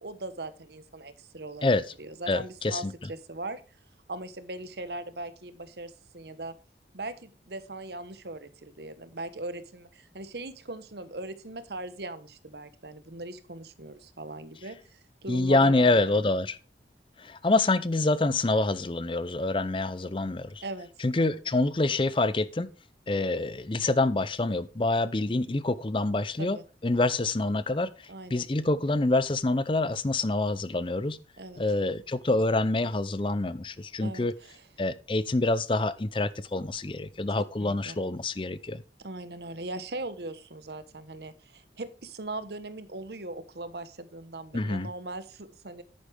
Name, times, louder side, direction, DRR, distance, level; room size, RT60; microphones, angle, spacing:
voice 1, 0.0-1.7 2.0-3.6 4.1-6.5 6.9-15.9 20.6-20.9 21.2-21.3 26.4-26.6 28.1-28.5 31.4-31.6 34.0-34.6 37.6-38.0 39.0-45.8, right 2 dB, 70° right, 13 dB, 1.1 m, -40 dB
voice 2, 2.3-2.9 15.3-16.6 17.2-20.6 21.0-22.7 23.1-26.6 26.8-31.2 31.6-34.3 34.8-38.8 44.5-44.9, left 2 dB, 30° left, 16 dB, 0.5 m, -26 dB
10.5 x 9.5 x 3.4 m, 0.34 s
head